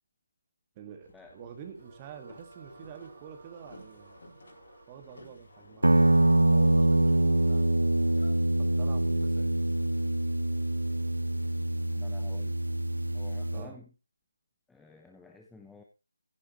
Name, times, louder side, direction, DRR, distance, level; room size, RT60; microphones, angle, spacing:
voice 1, 0.8-4.2 4.9-7.8 8.6-9.5 13.5-13.8, right 8 dB, 20° right, 6 dB, 1.9 m, -47 dB
Boat Water vehicle, 1.0-12.4, left 2 dB, 65° left, 4.7 m, -56 dB
sound 1, 1.8-7.0, right 5 dB, 35° right, 2.2 m, -56 dB
Guitar, 5.8-13.7, right 1 dB, 85° right, 0.5 m, -25 dB
voice 2, 11.9-12.5 13.1-13.9 14.7-15.8, left 4 dB, 5° left, 3 dB, 0.8 m, -51 dB
15.0 x 9.9 x 3.1 m, 0.29 s
figure-of-eight pair, 155°, 0 cm